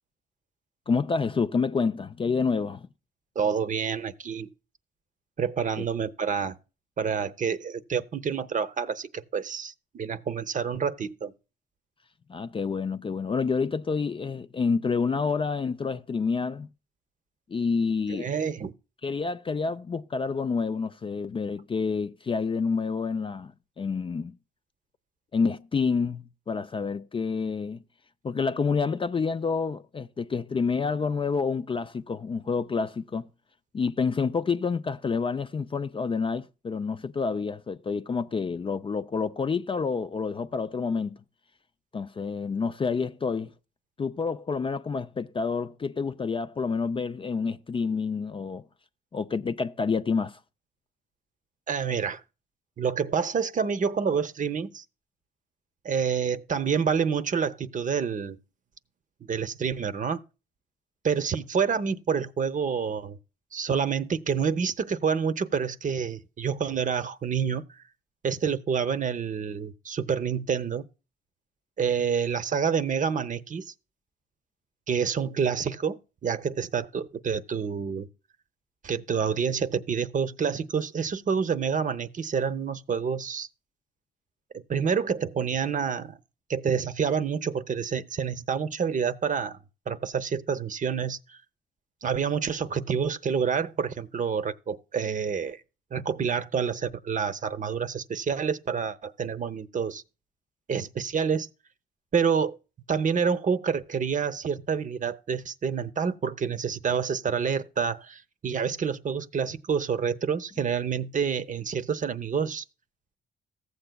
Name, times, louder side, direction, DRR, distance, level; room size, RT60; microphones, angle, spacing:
voice 1, 0.9-2.9 5.8-5.9 12.3-16.7 17.5-18.3 19.0-24.3 25.3-27.8 28.2-33.3 33.7-41.2 41.9-43.5 44.0-48.6 49.1-50.4, left 5 dB, 25° left, 0.4 m, -28 dB
voice 2, 3.4-4.5 5.4-6.6 7.0-11.3 18.1-18.7 51.7-52.2 52.8-54.8 55.8-58.4 59.3-60.2 61.0-63.2 63.5-67.6 68.2-70.9 71.8-73.7 74.9-78.1 78.8-83.5 84.5-86.2 86.5-89.6 89.9-91.4 92.0-95.6 95.9-100.0 100.7-101.5 102.1-102.6 102.9-112.6, right 6 dB, 40° right, 0.8 m, -28 dB
15.0 x 7.9 x 2.3 m
cardioid pair, 90°, 20 cm